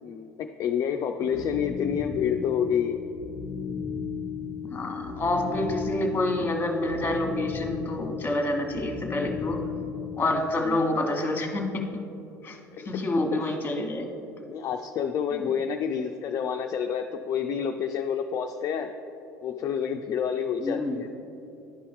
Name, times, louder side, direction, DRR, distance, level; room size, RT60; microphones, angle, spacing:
voice 1, 0.0-3.0 9.7-10.1 10.6-11.2 12.7-12.9 13.3-13.4 14.5-18.9 19.4-21.1, left 7 dB, 40° left, 5 dB, 0.4 m, -29 dB
sound 1, 1.2-10.5, left 6 dB, 70° right, 1.7 m, -35 dB
voice 2, 4.6-9.6 10.2-12.0 12.4-12.6 12.8-14.1 15.3-15.5 20.6-20.9, left 1 dB, 20° left, 3 dB, 1.2 m, -28 dB
11.0 x 5.4 x 3.5 m, 2.8 s
hypercardioid pair, 65°, 9 cm